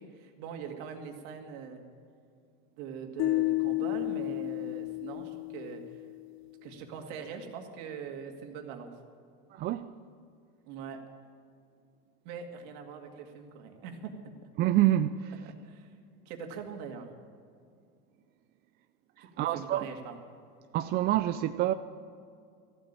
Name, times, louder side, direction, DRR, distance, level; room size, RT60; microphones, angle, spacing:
voice 1, 0.0-1.8 2.8-5.8 6.6-8.9 10.7-11.0 12.2-14.1 15.5-15.9 16.3-17.1 19.4-20.2, right 6 dB, 60° right, 2.2 m, -42 dB
sound 1, 3.2-6.4, left 21 dB, 45° left, 0.5 m, -32 dB
voice 2, 9.5-9.8 14.6-15.3 19.4-19.9 20.7-21.7, right 13 dB, 35° right, 0.4 m, -27 dB
14.5 x 8.1 x 9.0 m
supercardioid pair, 140°, 29 cm